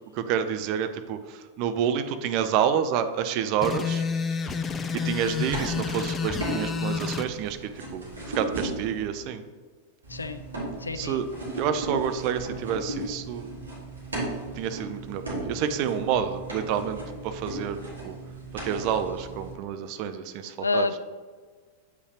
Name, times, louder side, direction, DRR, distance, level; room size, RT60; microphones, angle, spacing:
voice 1, 0.1-4.0 4.9-8.1 8.3-9.4 11.0-11.3 11.5-13.5 14.5-18.2 18.6-20.9, right 8 dB, 45° right, 9 dB, 0.5 m, -28 dB
sound 1, 3.6-7.3, left 5 dB, 20° left, 0.5 m, -29 dB
sound 2, 4.9-9.1 10.0-19.5, right 1 dB, 70° right, 1.9 m, -36 dB
voice 2, 10.1-10.4 10.8-11.2 20.6-21.0, left 3 dB, 80° left, 11 dB, 0.4 m, -28 dB
8.0 x 5.5 x 2.9 m, 1.5 s
figure-of-eight pair, 90°, 0 cm